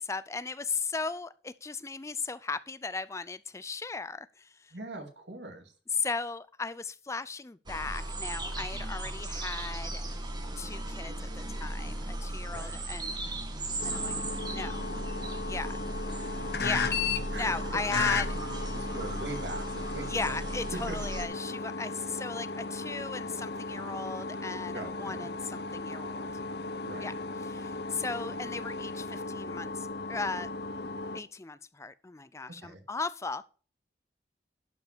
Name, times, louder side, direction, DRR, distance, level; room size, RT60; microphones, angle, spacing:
voice 1, 0.0-4.7 6.0-10.0 10.6-13.1 13.8-14.2 14.5-14.8 15.5-15.8 16.6-17.0 17.3-18.3 20.1-26.3 27.0-27.1 27.5-30.5 31.1-33.5, left 4 dB, 15° left, 0.4 m, -36 dB
voice 2, 4.7-5.7 8.5-9.0 12.5-12.8 15.2-15.3 17.0-18.1 18.7-20.4 20.7-21.0 24.7-25.3 26.8-27.1 32.6-32.8, right 2 dB, 80° right, 2.2 m, -42 dB
sound 1, 7.7-21.2, right 1 dB, 25° right, 1.5 m, -37 dB
sound 2, 9.6-21.6, right 1 dB, 50° right, 2.2 m, -50 dB
sound 3, 13.8-31.2, left 4 dB, 60° left, 0.8 m, -36 dB
12.0 x 5.4 x 6.1 m
head